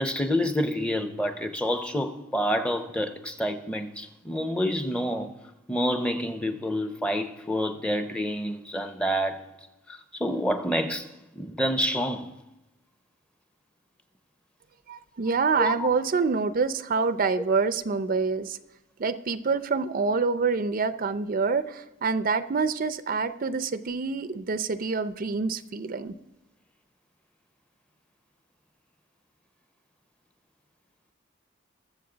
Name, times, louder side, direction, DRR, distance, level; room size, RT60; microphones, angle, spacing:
voice 1, 0.0-5.3 5.7-9.4 9.9-12.3 15.6-15.9, equal, 5° left, 0.7 m, -28 dB
voice 2, 14.9-18.6 19.0-26.1, right 4 dB, 45° right, 0.5 m, -26 dB
22.0 x 7.4 x 3.9 m
head